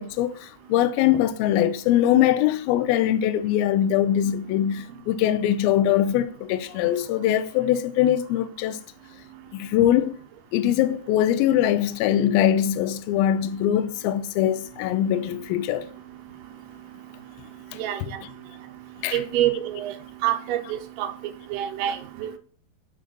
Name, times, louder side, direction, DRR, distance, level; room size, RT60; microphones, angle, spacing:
voice 1, 0.0-8.8 9.5-10.2 10.5-15.8 18.0-18.1 19.0-19.2, left 11 dB, 80° left, 2.3 m, -22 dB
voice 2, 19.1-19.9 20.2-21.1 21.5-22.4, right 12 dB, 90° right, 2.7 m, -26 dB
6.9 x 3.9 x 6.4 m
omnidirectional pair, 4.6 m